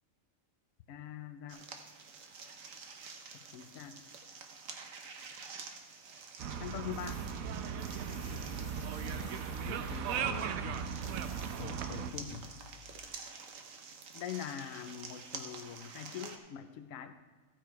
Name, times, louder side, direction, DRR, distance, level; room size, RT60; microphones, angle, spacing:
voice 1, 0.9-1.6 3.5-4.0 6.6-7.2 14.1-17.1, left 10 dB, 80° left, 9 dB, 1.1 m, -43 dB
sound 1, 1.5-16.4, right 5 dB, 70° right, 1.3 m, -49 dB
sound 2, 6.4-12.1, right 7 dB, 90° right, 1.1 m, -37 dB
Tools, 6.9-13.1, left 5 dB, 45° left, 2.0 m, -54 dB
voice 2, 9.0-9.4 9.6-10.8 11.6-12.4, left 5 dB, 60° left, 5 dB, 1.3 m, -45 dB
14.5 x 6.6 x 4.6 m, 1.3 s
omnidirectional pair, 1.4 m